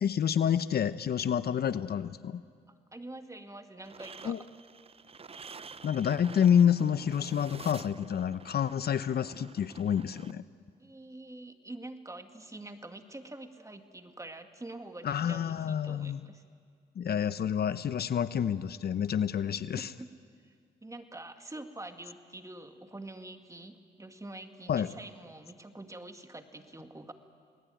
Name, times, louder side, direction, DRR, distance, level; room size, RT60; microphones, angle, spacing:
voice 1, 0.0-2.4 4.2-4.4 5.8-10.4 15.0-16.2 17.0-19.9 24.7-24.9, left 8 dB, 60° left, 14 dB, 0.8 m, -28 dB
voice 2, 2.7-4.4 10.8-16.4 19.8-20.1 20.4-20.6 20.8-27.1, right 2 dB, 15° right, 7 dB, 2.0 m, -46 dB
sound 1, 3.8-10.3, right 5 dB, 30° right, 0.7 m, -49 dB
29.5 x 20.0 x 9.3 m, 2.1 s
cardioid pair, 75°, 19 cm